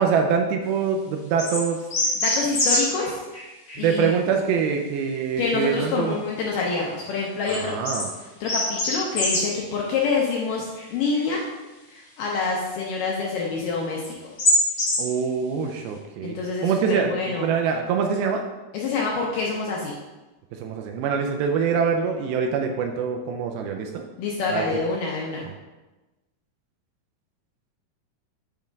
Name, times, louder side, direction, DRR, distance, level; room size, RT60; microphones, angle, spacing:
voice 1, 0.0-1.8 3.8-6.2 7.5-8.1 15.0-16.4 16.6-18.5 20.5-24.0 24.5-24.6 25.4-25.5, right 6 dB, 80° right, 3 dB, 2.3 m, -24 dB
sound 1, 1.4-1.6 1.9-3.1 3.3-3.8 7.5-8.1 8.4-9.5 10.8-10.9 11.1-11.2 14.0-14.1 14.4-15.1, left 1 dB, 60° left, 0.9 m, -23 dB
voice 2, 2.2-3.2 3.8-4.1 5.4-7.7 8.4-11.4 11.9-14.0 16.2-17.5 18.7-20.0 24.2-25.4, left 4 dB, 75° left, -3 dB, 2.0 m, -26 dB
7.5 x 3.5 x 5.1 m, 1.1 s
omnidirectional pair, 4.6 m